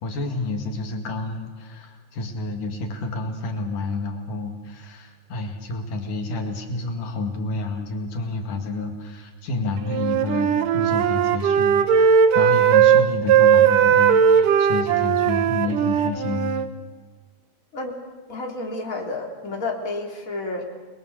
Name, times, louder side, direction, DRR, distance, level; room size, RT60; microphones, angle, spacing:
voice 1, 0.0-16.6, left 3 dB, 75° left, 3 dB, 3.7 m, -30 dB
Wind instrument woodwind instrument, 9.9-16.7, right 8 dB, 80° right, 2.7 m, -18 dB
voice 2, 18.3-20.6, left 2 dB, 25° left, 0 dB, 3.4 m, -30 dB
29.5 x 21.5 x 6.7 m, 1.4 s
omnidirectional pair, 3.8 m